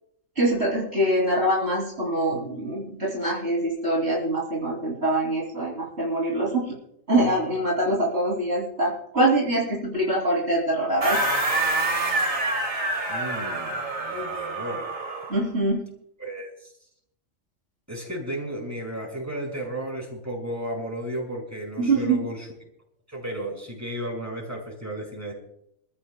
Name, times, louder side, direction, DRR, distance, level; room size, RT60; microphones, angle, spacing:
voice 1, 0.3-6.8 7.1-11.2 15.3-15.8 21.8-22.2, right 1 dB, 55° right, -3 dB, 3.2 m, -24 dB
sound 1, 11.0-15.4, right 2 dB, 90° right, 3.0 m, -26 dB
voice 2, 13.1-15.0 16.2-16.7 17.9-22.5 23.1-25.3, right 1 dB, 10° right, -2 dB, 5.5 m, -34 dB
27.0 x 14.5 x 2.2 m, 0.75 s
omnidirectional pair, 1.3 m